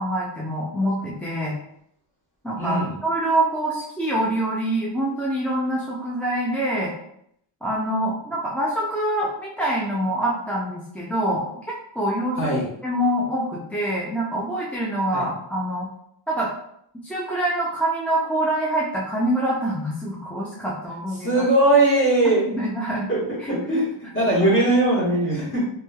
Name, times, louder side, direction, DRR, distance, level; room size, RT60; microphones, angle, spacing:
voice 1, 0.0-1.6 2.4-6.9 7.6-15.9 16.3-16.5 17.0-21.4 22.2-23.1 23.7-23.8 24.4-24.5, right 1 dB, 5° left, -5 dB, 0.4 m, -25 dB
voice 2, 2.6-2.9 12.4-12.7 15.1-15.3 21.2-22.5 23.1-25.7, right 1 dB, 25° left, -7 dB, 1.5 m, -20 dB
3.0 x 3.0 x 2.3 m, 0.73 s
wide cardioid pair, 120°, 45 cm